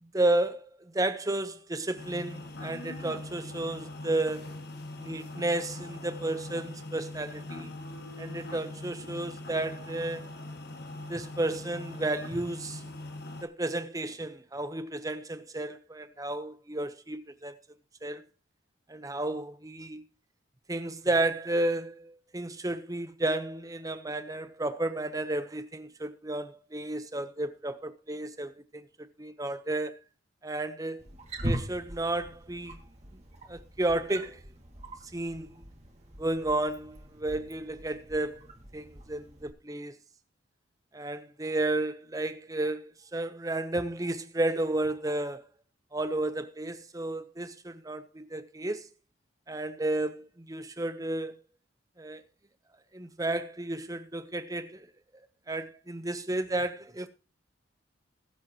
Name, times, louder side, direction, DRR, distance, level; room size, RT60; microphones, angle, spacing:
voice 1, 0.0-4.5 5.0-7.7 8.2-10.3 11.1-12.8 13.4-17.5 18.0-18.2 18.9-20.0 20.7-28.8 29.2-29.9 30.4-31.0 31.4-32.8 33.5-34.4 35.1-35.6 36.2-38.4 38.7-40.0 40.9-45.5 45.9-48.9 49.5-51.4 52.0-52.2 52.9-54.9 55.5-57.1, right 2 dB, 15° right, 0.8 m, -32 dB
sound 1, 2.0-13.4, left 2 dB, 55° left, 1.6 m, -42 dB
Wild animals, 31.0-39.5, right 1 dB, 35° right, 2.1 m, -41 dB
21.0 x 7.7 x 3.0 m
head